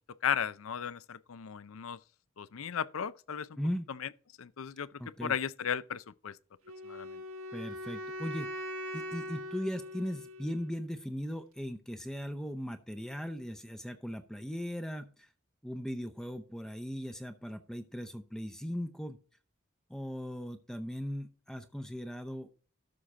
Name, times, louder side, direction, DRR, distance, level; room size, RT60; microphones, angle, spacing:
voice 1, 0.2-2.0 2.4-3.6 4.4-4.9 5.2-6.4 6.8-7.2, left 8 dB, 85° left, 0.5 m, -35 dB
voice 2, 3.6-3.9 5.0-5.4 7.5-8.5 8.9-15.3 15.6-19.2 19.9-22.5, equal, 5° left, 0.6 m, -38 dB
Wind instrument woodwind instrument, 6.7-10.8, left 1 dB, 85° right, 1.4 m, -41 dB
13.0 x 5.8 x 3.7 m
head